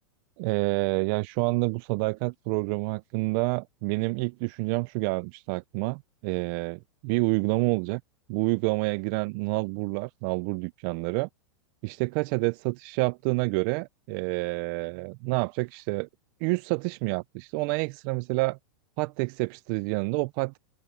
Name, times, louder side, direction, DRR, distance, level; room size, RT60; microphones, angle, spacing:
voice 1, 0.4-8.0 8.3-11.3 11.8-16.1 16.4-18.6 19.0-20.6, right 27 dB, 40° right, 0.4 m, -28 dB
open air
hypercardioid pair, 140°, 17 cm